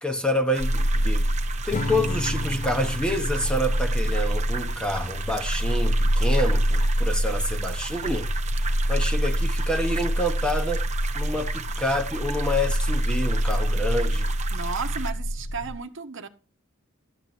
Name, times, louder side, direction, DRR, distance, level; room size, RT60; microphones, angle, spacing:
voice 1, 0.0-1.3 1.7-8.3 8.7-10.9 11.1-14.3, left 1 dB, 5° left, 0.9 m, -28 dB
sound 1, 0.5-15.1, right 7 dB, 35° right, 0.8 m, -37 dB
sound 2, 0.6-15.8, equal, 70° left, 0.8 m, -26 dB
Acoustic guitar / Strum, 1.7-5.1, left 2 dB, 40° left, 0.6 m, -34 dB
voice 2, 14.5-16.3, right 5 dB, 65° right, 1.0 m, -34 dB
12.0 x 7.5 x 4.2 m
head